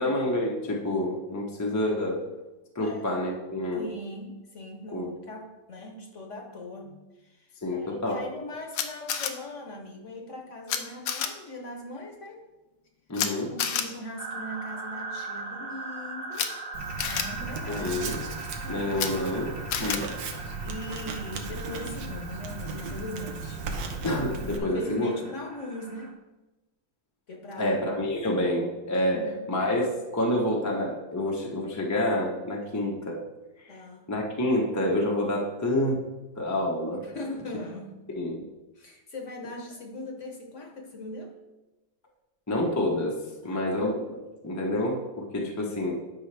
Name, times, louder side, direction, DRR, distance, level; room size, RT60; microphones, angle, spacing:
voice 1, 0.0-2.2 2.7-3.9 4.9-5.1 7.6-8.2 13.1-13.5 17.7-18.2 18.7-19.5 19.8-20.0 24.0-25.1 27.6-33.2 33.7-33.8 34.1-36.0 36.4-37.0 38.1-38.4 42.5-43.2 43.4-46.0, left 1 dB, 15° left, -1 dB, 0.6 m, -28 dB
voice 2, 3.7-12.4 13.5-16.5 17.0-18.0 18.6-19.0 19.9-23.7 24.6-26.2 27.3-27.8 29.1-29.5 32.6-32.9 33.7-34.1 37.0-38.0 38.7-41.4 43.4-43.8 45.3-45.9, left 1 dB, 50° left, 2 dB, 1.2 m, -40 dB
Camera, 8.7-9.3 10.7-10.8 11.1-11.3 13.1-13.3 13.6-13.8 16.3-16.5 17.0-17.2 18.9-19.1 19.7-20.0, left 8 dB, 80° left, 1.4 m, -28 dB
sound 1, 14.2-26.1, right 3 dB, 40° right, 1.0 m, -40 dB
Writing, 16.7-24.6, right 4 dB, 75° right, 1.5 m, -36 dB
11.0 x 5.6 x 3.4 m, 1.1 s
omnidirectional pair, 2.0 m